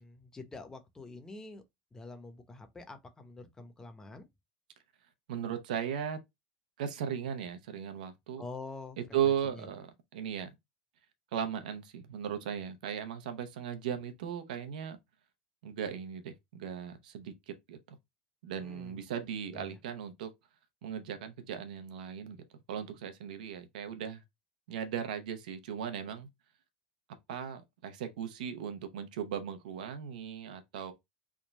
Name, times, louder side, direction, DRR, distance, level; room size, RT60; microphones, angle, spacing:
voice 1, 0.0-1.6 1.9-4.3 8.4-9.7 18.6-19.0 19.5-19.8, left 3 dB, 15° left, 0.8 m, -47 dB
voice 2, 5.3-6.2 6.8-8.4 9.1-10.5 11.3-15.0 15.6-18.0 18.4-20.3 20.8-22.4 22.7-24.2 24.7-26.3 27.3-30.9, right 8 dB, 80° right, 0.9 m, -37 dB
3.6 x 2.2 x 4.1 m
supercardioid pair, 110°, 4 cm